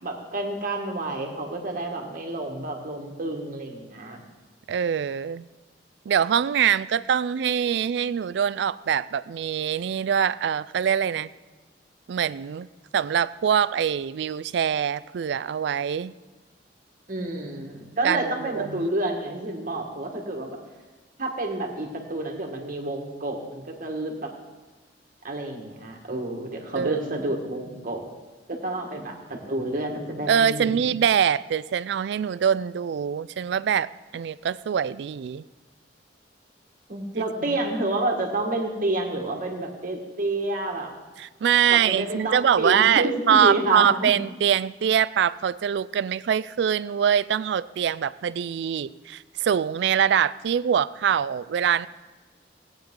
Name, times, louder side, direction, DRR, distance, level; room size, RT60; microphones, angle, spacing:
voice 1, 0.0-4.2 17.1-20.6 21.2-24.3 25.2-28.0 28.5-30.8 36.9-40.9 41.7-44.2, right 2 dB, 50° right, 2 dB, 1.7 m, -29 dB
voice 2, 4.7-5.5 6.1-11.3 12.1-12.7 12.9-16.1 18.0-18.9 26.7-27.0 30.3-35.4 37.2-37.6 41.2-51.9, right 8 dB, 70° right, 17 dB, 0.3 m, -24 dB
17.0 x 8.9 x 3.7 m, 1.3 s
head